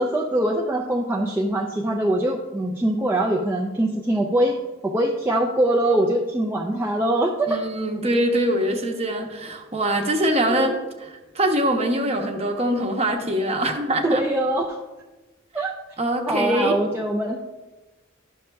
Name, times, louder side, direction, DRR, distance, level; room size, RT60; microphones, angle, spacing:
voice 1, 0.0-7.6 10.5-10.8 14.0-14.8 15.5-15.8 16.3-17.4, right 1 dB, 10° right, -1 dB, 0.4 m, -23 dB
voice 2, 7.5-10.7 11.0-14.2 16.0-16.8, right 1 dB, 30° right, 3 dB, 0.8 m, -23 dB
11.5 x 6.3 x 2.3 m, 1.2 s
head